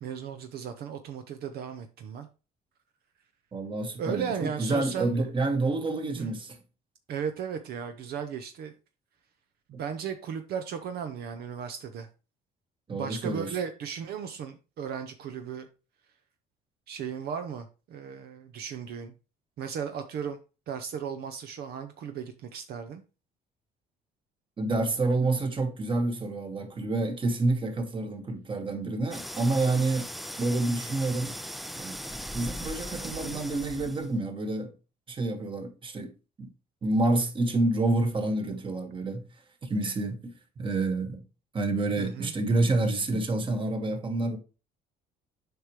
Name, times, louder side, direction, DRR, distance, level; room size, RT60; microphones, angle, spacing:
voice 1, 0.0-2.3 4.0-5.3 6.2-6.3 7.1-8.7 9.7-12.1 12.9-15.7 16.9-19.1 19.6-20.4 20.7-23.0 42.0-42.3, right 7 dB, 70° right, 0.9 m, -36 dB
voice 2, 3.5-6.6 12.9-13.5 24.6-30.1 30.4-31.4 31.7-34.7 35.1-36.1 36.4-36.5 36.8-39.3 39.6-40.3 40.6-41.2 41.5-44.4, right 2 dB, 30° right, 1.5 m, -28 dB
sound 1, 29.1-34.2, equal, ahead, 0.4 m, -39 dB
7.8 x 5.2 x 3.1 m
cardioid pair, 110°, 17 cm